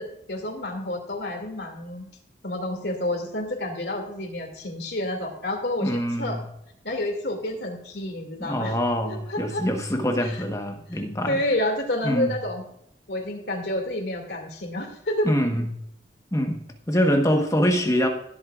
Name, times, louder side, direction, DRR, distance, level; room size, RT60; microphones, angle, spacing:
voice 1, 0.0-2.1 2.4-6.4 6.8-8.8 9.1-9.7 10.2-10.4 10.9-12.6 13.1-15.3 17.7-17.9, left 1 dB, 65° left, 3 dB, 2.5 m, -29 dB
voice 2, 5.8-6.4 8.4-11.4 12.0-12.4 15.2-15.7 16.3-18.1, equal, 15° left, 4 dB, 1.2 m, -24 dB
20.0 x 8.1 x 2.5 m, 0.77 s
head